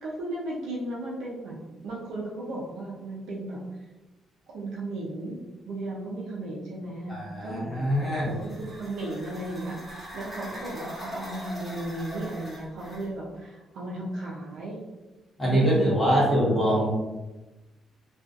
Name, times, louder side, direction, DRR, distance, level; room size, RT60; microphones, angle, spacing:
voice 1, 0.0-3.6 4.5-5.4 5.7-14.8 15.4-16.5, right 2 dB, 80° right, -5 dB, 0.5 m, -35 dB
voice 2, 7.1-8.3 15.4-16.9, equal, 10° left, -8 dB, 1.1 m, -23 dB
sound 1, 7.8-13.1, equal, 5° right, 1.2 m, -42 dB
2.4 x 2.3 x 2.4 m, 1.1 s
cardioid pair, 90°, 0 cm